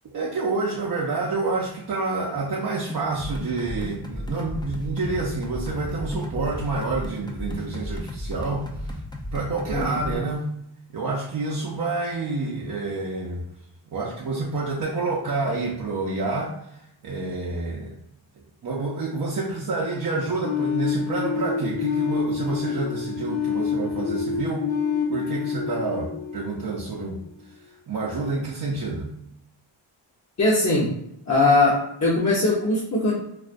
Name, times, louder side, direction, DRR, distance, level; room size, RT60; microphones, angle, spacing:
voice 1, 0.0-9.0 9.3-10.5 10.9-13.4 13.9-18.0 18.6-24.7 25.1-29.1, right 3 dB, 50° right, -3 dB, 0.5 m, -28 dB
sound 1, 2.9-10.2, left 1 dB, 10° left, 0.3 m, -34 dB
voice 2, 9.7-10.1 30.4-30.9 31.3-33.1, left 2 dB, 35° left, -7 dB, 0.7 m, -20 dB
sound 2, 20.4-27.2, left 6 dB, 70° left, 0.9 m, -27 dB
2.3 x 2.1 x 2.4 m, 0.78 s
cardioid pair, 75°, 47 cm